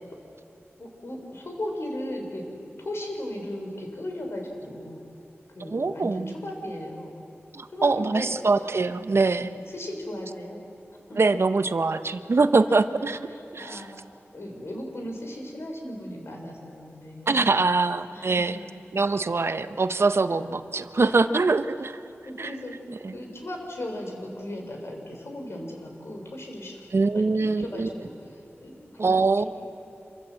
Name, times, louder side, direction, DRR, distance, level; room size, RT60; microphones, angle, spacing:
voice 1, 0.8-2.4 2.8-5.0 5.5-7.1 7.7-8.3 9.7-10.6 11.1-11.2 12.7-13.9 14.3-17.5 18.1-18.8 20.3-20.6 21.0-21.5 22.2-22.7 23.1-26.9 27.1-29.5, left 1 dB, 65° left, 2 dB, 4.0 m, -37 dB
voice 2, 5.7-6.3 7.5-9.5 11.2-13.2 13.5-13.8 17.3-18.6 18.9-22.0 22.4-22.5 23.0-23.1 26.9-27.9 29.0-29.4, right 3 dB, 60° right, 11 dB, 0.7 m, -23 dB
26.0 x 14.5 x 7.6 m, 2.7 s
wide cardioid pair, 70°, 5 cm